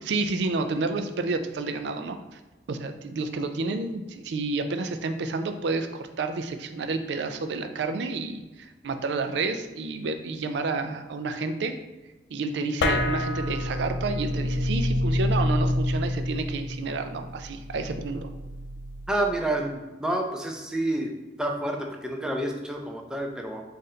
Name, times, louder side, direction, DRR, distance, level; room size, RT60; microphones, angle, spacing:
voice 1, 0.0-2.4 2.7-8.4 8.8-11.7 12.3-18.3, right 3 dB, 70° right, 8 dB, 0.4 m, -30 dB
sound 1, 12.8-19.5, left 1 dB, 80° left, 0.4 m, -28 dB
voice 2, 19.1-21.1 21.4-23.6, right 1 dB, 5° right, 1 dB, 0.4 m, -29 dB
3.8 x 2.5 x 4.1 m, 1.1 s
head